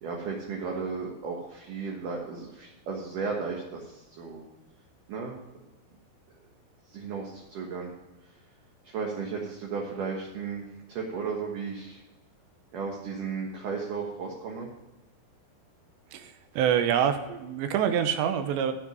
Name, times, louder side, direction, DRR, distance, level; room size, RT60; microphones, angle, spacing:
voice 1, 0.0-4.4 5.1-5.3 6.9-7.9 8.2-8.4 8.8-12.0 12.7-14.7, right 5 dB, 60° right, -1 dB, 2.6 m, -35 dB
voice 2, 16.1-18.7, right 9 dB, 90° right, 9 dB, 3.1 m, -26 dB
15.0 x 6.3 x 5.2 m, 1.0 s
omnidirectional pair, 5.1 m